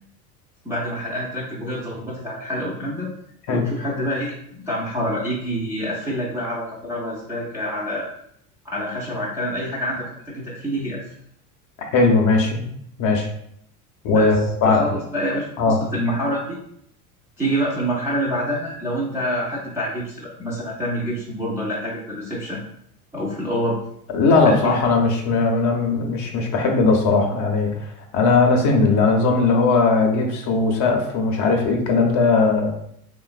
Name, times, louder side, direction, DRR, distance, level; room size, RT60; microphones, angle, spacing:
voice 1, 0.6-3.1 3.5-8.1 8.6-11.1 14.1-14.4 14.6-16.6 17.4-22.6 23.1-23.8 24.5-24.8, equal, 5° right, -8 dB, 0.3 m, -27 dB
voice 2, 11.9-12.7 13.0-13.3 14.0-15.0 15.6-15.8 24.1-32.7, left 3 dB, 40° left, 3 dB, 0.6 m, -18 dB
3.0 x 2.2 x 2.3 m, 0.71 s
hypercardioid pair, 75°, 46 cm